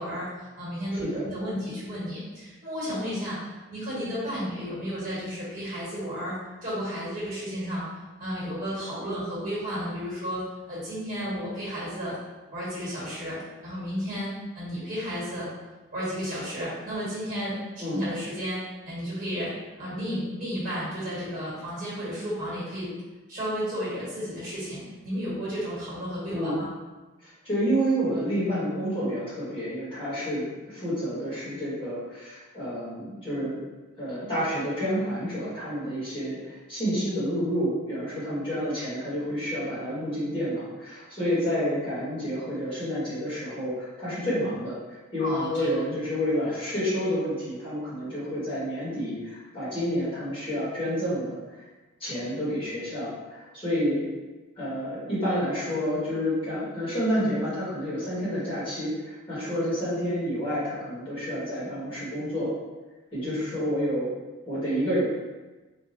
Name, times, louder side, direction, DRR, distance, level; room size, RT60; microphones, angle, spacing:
voice 1, 0.0-3.4 3.7-7.8 8.2-12.1 12.5-15.5 15.9-17.5 17.9-19.5 19.8-22.9 23.3-26.7 45.2-45.7, equal, 40° right, -9 dB, 1.4 m, -33 dB
voice 2, 27.2-33.6 34.0-44.8 45.1-51.4 52.0-54.1 54.6-62.5 63.1-64.1 64.4-65.0, equal, 25° left, -11 dB, 1.5 m, -29 dB
3.8 x 2.4 x 2.6 m, 1.2 s
head